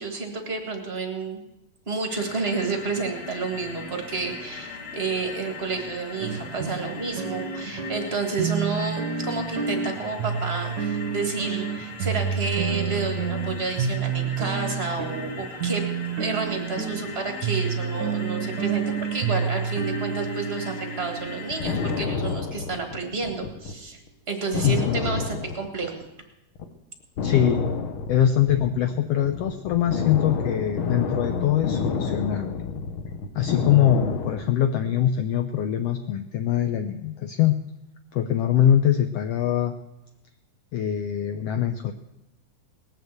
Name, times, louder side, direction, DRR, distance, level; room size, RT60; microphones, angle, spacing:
voice 1, 0.0-1.4 1.9-15.8 16.2-24.0 24.3-26.0, right 4 dB, 35° right, 3 dB, 1.0 m, -30 dB
sound 1, 2.1-22.1, left 4 dB, 40° left, 2.2 m, -40 dB
sound 2, 6.2-22.4, right 6 dB, 65° right, 1.1 m, -29 dB
sound 3, 21.3-23.8 24.1-24.2 24.5-26.2 26.6-26.7 27.2-34.4, left 5 dB, 65° left, 1.3 m, -29 dB
voice 2, 24.6-25.0 27.2-27.6 28.1-32.6 33.3-37.6 38.1-39.7 40.7-41.9, left 10 dB, 85° left, 7 dB, 1.4 m, -23 dB
19.5 x 6.8 x 8.0 m, 0.92 s
omnidirectional pair, 3.7 m